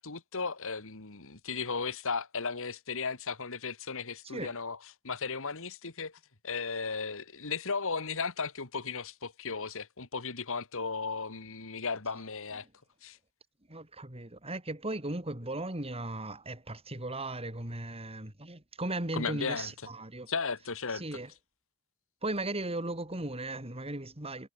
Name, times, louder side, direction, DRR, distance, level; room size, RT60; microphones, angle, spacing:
voice 1, 0.0-4.8 5.0-6.2 6.4-12.7 13.0-13.2 19.1-19.7 20.3-21.0, left 4 dB, 65° left, 2.3 m, -35 dB
voice 2, 4.2-4.6 12.6-12.7 13.7-20.3 20.9-21.3 22.2-24.5, right 2 dB, 25° right, 4.9 m, -37 dB
head